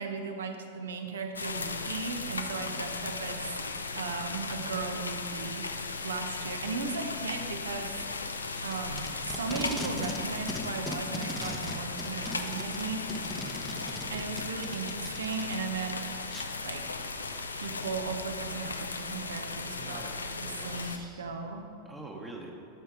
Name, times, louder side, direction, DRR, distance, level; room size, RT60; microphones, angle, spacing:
voice 1, 0.0-3.5 3.9-5.7 6.0-7.9 8.6-13.1 14.1-16.0 16.6-17.0 17.5-20.1 20.4-21.7, right 4 dB, 65° right, 5 dB, 0.9 m, -36 dB
sound 1, 1.3-21.0, left 3 dB, 75° left, 0.6 m, -37 dB
Packing tape duct tape, 8.5-10.2 10.5-15.6 16.3-16.4, left 1 dB, 5° left, 0.8 m, -39 dB
voice 2, 19.6-21.3 21.8-22.5, right 2 dB, 10° right, -1 dB, 1.1 m, -46 dB
12.5 x 5.7 x 4.9 m, 3.0 s
figure-of-eight pair, 90°, 0 cm